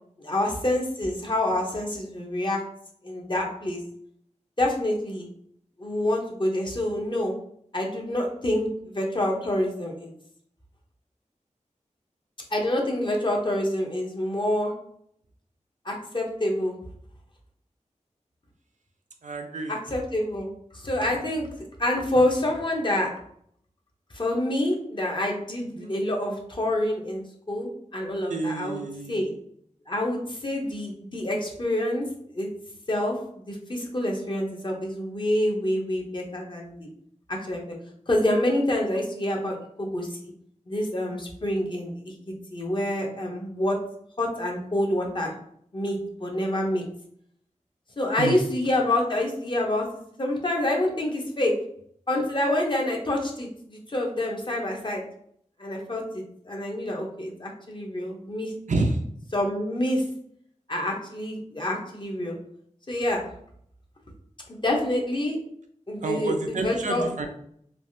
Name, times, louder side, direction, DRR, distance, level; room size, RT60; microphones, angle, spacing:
voice 1, 0.2-2.6 3.0-3.8 4.6-5.3 5.8-7.3 7.7-10.1 12.5-14.7 15.8-16.8 19.7-20.5 20.7-21.5 21.8-23.1 24.1-28.8 29.1-29.3 29.9-32.1 32.3-32.5 32.9-36.9 37.3-37.8 38.1-40.2 40.7-42.1 42.5-43.8 44.2-45.3 45.7-46.8 48.0-51.5 52.1-55.0 55.6-58.5 59.3-60.0 60.7-62.3 62.9-63.2 64.5-65.4 65.9-67.1, left 1 dB, 40° left, 0 dB, 0.7 m, -27 dB
voice 2, 19.2-19.8 25.7-25.9 28.3-29.3 48.2-48.4 58.7-59.0 66.0-67.3, right 3 dB, 75° right, 4 dB, 0.5 m, -29 dB
3.3 x 2.4 x 2.6 m, 0.67 s
wide cardioid pair, 75°, 13 cm